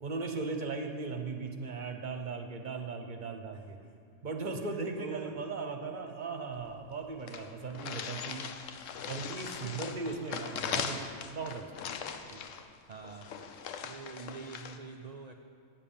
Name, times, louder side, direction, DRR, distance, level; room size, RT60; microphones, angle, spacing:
voice 1, 0.0-3.8 4.2-8.5 9.0-11.6, right 4 dB, 45° right, 4 dB, 0.8 m, -38 dB
voice 2, 4.7-5.3 8.9-9.1 9.6-10.0 12.3-12.5 12.9-13.4 13.8-15.3, right 5 dB, 70° right, 3 dB, 0.4 m, -45 dB
sound 1, 6.6-6.7 6.9-7.0 7.3-14.8, left 7 dB, 85° left, 1.0 m, -40 dB
8.9 x 7.3 x 7.0 m, 2.5 s
omnidirectional pair, 1.3 m